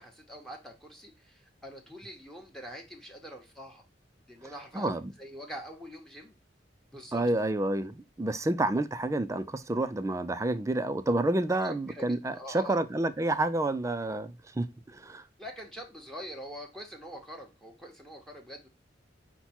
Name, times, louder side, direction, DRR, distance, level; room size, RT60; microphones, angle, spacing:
voice 1, 0.0-3.8 4.3-4.9 5.2-6.3 6.9-7.3 11.5-12.1 12.3-12.8 15.4-18.7, equal, ahead, 0.8 m, -44 dB
voice 2, 7.1-14.7 15.0-15.2, right 2 dB, 15° right, 0.3 m, -29 dB
5.7 x 2.2 x 4.2 m
head